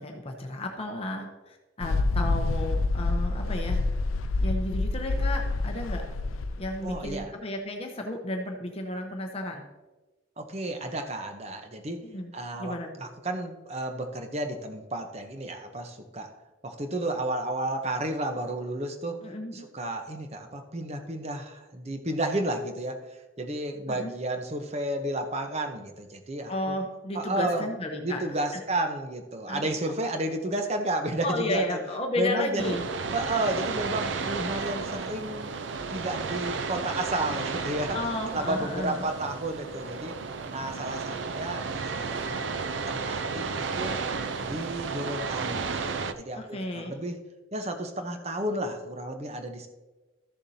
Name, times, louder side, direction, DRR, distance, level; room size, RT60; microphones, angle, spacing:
voice 1, 0.0-3.8 4.4-6.0 6.6-9.6 12.0-13.0 19.2-19.6 23.9-24.1 26.5-28.2 29.5-29.7 31.2-32.9 37.9-39.0 46.4-47.0, left 1 dB, 30° left, 2 dB, 0.8 m, -33 dB
Mechanical fan, 1.8-7.2, left 2 dB, 90° left, 0.4 m, -27 dB
voice 2, 6.8-7.3 10.4-12.0 12.3-16.3 16.6-23.0 23.4-26.8 27.1-27.7 28.0-31.8 32.2-32.8 33.1-35.6 35.9-40.1 40.5-42.4 42.6-44.0 44.4-47.2 47.5-49.7, right 1 dB, 30° right, 5 dB, 0.8 m, -32 dB
sound 1, 32.6-46.1, right 4 dB, 65° right, 0.5 m, -33 dB
13.5 x 7.0 x 2.8 m, 1.2 s
head